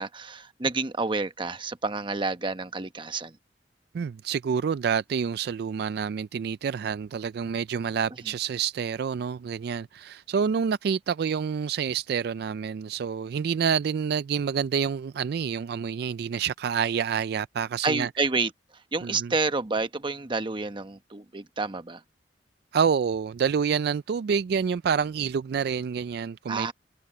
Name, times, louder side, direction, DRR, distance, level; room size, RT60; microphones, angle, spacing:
voice 1, 0.0-3.4 17.8-18.5 18.9-22.0 26.5-26.7, right 3 dB, 30° right, 1.0 m, -29 dB
voice 2, 3.9-18.1 19.0-19.3 22.7-26.7, right 7 dB, 65° right, 0.3 m, -28 dB
head